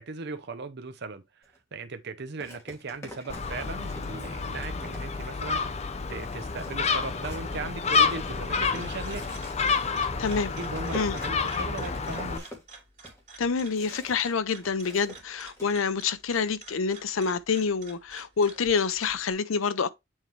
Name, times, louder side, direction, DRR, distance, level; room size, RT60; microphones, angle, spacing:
voice 1, 0.0-1.4 1.7-5.8 6.1-9.4 9.8-12.4, right 3 dB, 60° right, 0.7 m, -38 dB
sound 1, 1.4-1.6 2.4-5.4 5.8-5.9 6.2-14.3 14.6-15.7, left 1 dB, 15° left, 2.5 m, -47 dB
Gull seagull, 3.3-12.4, left 5 dB, 35° left, 0.7 m, -29 dB
sound 2, 8.4-19.3, right 4 dB, 40° right, 3.2 m, -50 dB
voice 2, 10.2-10.5 10.9-11.2 13.4-19.9, left 5 dB, 90° left, 0.6 m, -27 dB
7.4 x 4.5 x 3.1 m
head